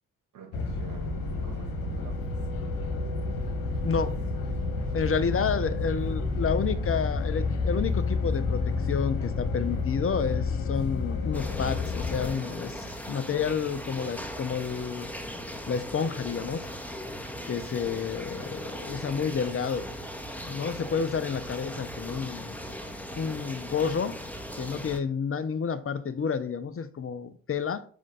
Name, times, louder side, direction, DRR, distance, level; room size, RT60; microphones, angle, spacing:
voice 1, 0.3-4.0, right 6 dB, 55° right, 2.3 m, -50 dB
sound 1, 0.5-12.3, left 3 dB, 60° left, 1.7 m, -30 dB
voice 2, 4.9-8.6 8.9-15.1 15.7-16.6 17.5-19.9 20.4-22.6 23.2-24.2 24.6-27.9, left 6 dB, 35° left, 1.1 m, -30 dB
sound 2, 11.3-25.0, equal, 5° left, 1.7 m, -38 dB
7.7 x 5.7 x 4.1 m
hypercardioid pair, 45°, 39 cm